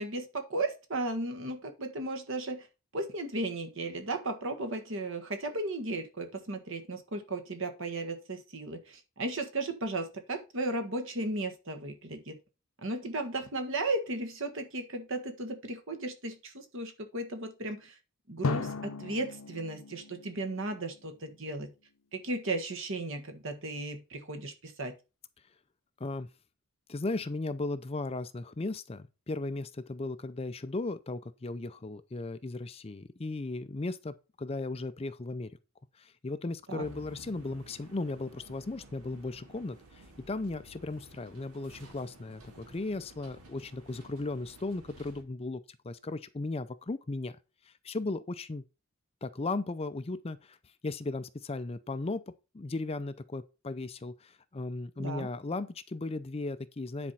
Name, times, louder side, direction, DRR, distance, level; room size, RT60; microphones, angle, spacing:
voice 1, 0.0-2.7 2.9-12.4 12.8-17.9 18.3-21.7 22.1-24.9 36.7-36.8 55.0-55.3, right 2 dB, 60° right, 1.5 m, -35 dB
Drum, 18.4-21.3, left 4 dB, 75° left, 0.8 m, -37 dB
voice 2, 26.0-26.3 26.9-35.5 36.0-47.4 47.7-48.6 49.2-50.6 50.8-52.2 52.5-57.1, left 2 dB, 25° left, 0.5 m, -36 dB
sound 1, 36.8-45.2, right 2 dB, 85° right, 2.1 m, -54 dB
10.0 x 4.3 x 5.7 m
head